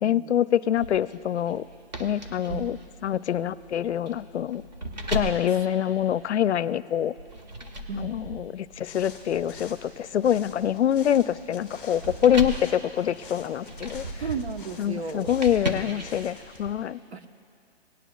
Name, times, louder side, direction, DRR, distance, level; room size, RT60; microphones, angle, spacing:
voice 1, 0.0-1.6 2.0-2.8 3.0-4.6 5.1-7.1 7.9-14.1 14.8-17.0, left 10 dB, 85° left, 17 dB, 0.5 m, -25 dB
sound 1, 0.8-6.6 7.2-16.7, right 1 dB, 40° right, 1.2 m, -37 dB
voice 2, 2.5-2.8 7.9-8.1 14.2-15.4 17.1-17.3, right 5 dB, 75° right, 7 dB, 1.1 m, -35 dB
sound 2, 8.8-16.6, left 4 dB, ahead, 0.7 m, -48 dB
19.0 x 10.0 x 2.3 m, 2.4 s
hypercardioid pair, 175°, 33 cm